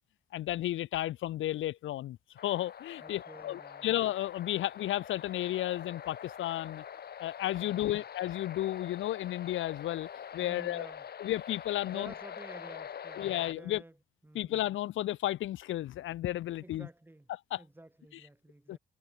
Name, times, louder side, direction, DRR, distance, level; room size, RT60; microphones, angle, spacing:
voice 1, 0.3-2.2 2.4-6.8 7.2-10.1 10.3-10.9 11.2-12.1 13.2-13.8 14.3-16.9 17.5-17.6 18.7-18.8, left 14 dB, 80° left, 1.4 m, -33 dB
sound 1, 2.4-13.5, left 8 dB, 55° left, 2.2 m, -45 dB
voice 2, 3.0-3.9 7.6-8.0 10.4-11.0 11.9-14.0 14.2-14.6 16.6-17.3 17.6-18.8, right 1 dB, 10° right, 6.3 m, -51 dB
cardioid pair, 90°, 20 cm